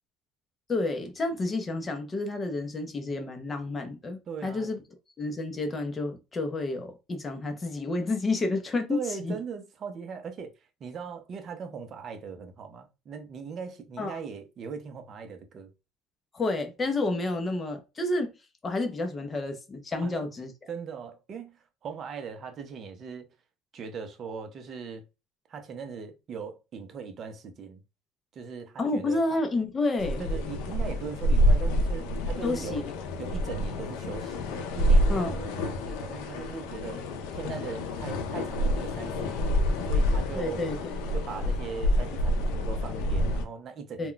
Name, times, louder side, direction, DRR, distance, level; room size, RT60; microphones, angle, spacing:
voice 1, 0.7-4.8 5.2-9.4 14.0-14.2 16.3-18.3 18.6-20.5 28.8-30.2 32.4-32.9 35.1-35.7 40.3-41.0 44.0-44.1, left 2 dB, 20° left, 0.6 m, -30 dB
voice 2, 4.3-4.7 8.9-10.5 10.8-15.7 20.0-20.1 20.7-21.6 21.8-23.3 23.7-25.0 25.5-27.8 28.4-29.4 30.2-32.8 33.2-37.0 37.3-39.5 39.8-40.6 41.1-44.1, right 6 dB, 40° right, 0.6 m, -39 dB
sound 1, 30.0-43.4, equal, 75° left, 0.5 m, -27 dB
2.2 x 2.2 x 3.8 m
cardioid pair, 130°, 0 cm